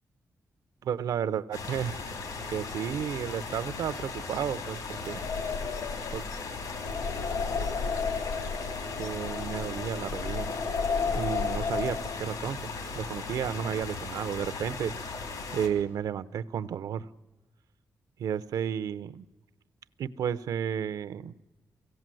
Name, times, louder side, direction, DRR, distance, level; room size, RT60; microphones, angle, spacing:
voice 1, 0.8-2.0 2.5-5.2 6.1-6.2 9.0-10.5 11.1-12.6 12.9-14.9 15.5-17.1 18.2-19.2 20.0-21.3, right 8 dB, 85° right, 14 dB, 0.6 m, -32 dB
sound 1, 1.5-15.7, left 4 dB, 85° left, 3.3 m, -38 dB
sound 2, 4.9-12.5, left 5 dB, 65° left, 1.0 m, -33 dB
24.0 x 17.0 x 7.7 m, 1.1 s
wide cardioid pair, 175°, 6 cm